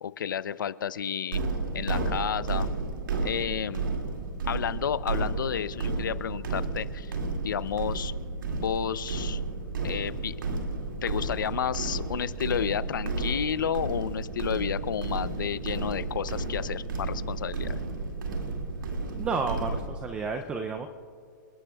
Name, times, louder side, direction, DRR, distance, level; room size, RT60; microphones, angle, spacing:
voice 1, 0.0-1.4 1.7-2.7 3.2-3.8 4.5-7.1 7.4-8.1 8.5-9.4 9.8-10.4 11.0-17.8, left 8 dB, 80° left, 16 dB, 0.6 m, -31 dB
sound 1, 1.3-19.9, right 3 dB, 85° right, 2.2 m, -32 dB
voice 2, 19.2-20.9, right 4 dB, 10° right, 7 dB, 0.4 m, -31 dB
28.5 x 11.5 x 2.3 m, 2.5 s
hypercardioid pair, 160°, 11 cm